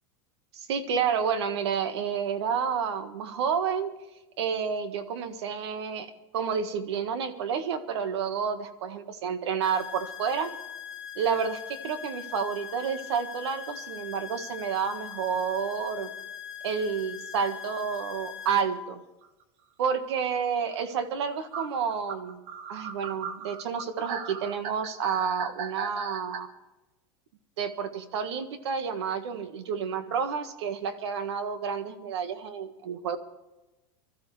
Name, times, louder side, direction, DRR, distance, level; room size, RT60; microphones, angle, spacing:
voice 1, 0.7-3.9 4.4-10.5 11.1-16.1 16.6-19.0 19.8-22.4 22.7-26.5 27.6-33.2, right 6 dB, 80° right, 10 dB, 1.6 m, -30 dB
sound 1, 9.6-18.6, left 9 dB, 15° right, 4.1 m, -41 dB
sound 2, 19.2-19.3 20.7-20.8 21.5-26.4, right 6 dB, 45° right, 1.3 m, -37 dB
25.0 x 13.5 x 3.3 m, 1.1 s
supercardioid pair, 175°, 14 cm